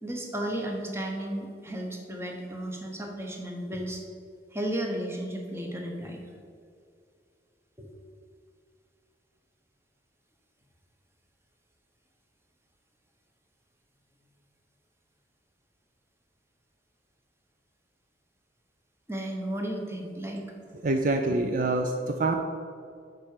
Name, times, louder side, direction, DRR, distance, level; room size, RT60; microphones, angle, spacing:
voice 1, 0.0-4.0 4.5-6.2 7.8-7.9 19.1-20.4, right 1 dB, 15° right, 1 dB, 1.1 m, -34 dB
voice 2, 20.8-22.3, right 2 dB, 45° right, 4 dB, 0.5 m, -26 dB
7.5 x 4.8 x 6.5 m, 2.3 s
head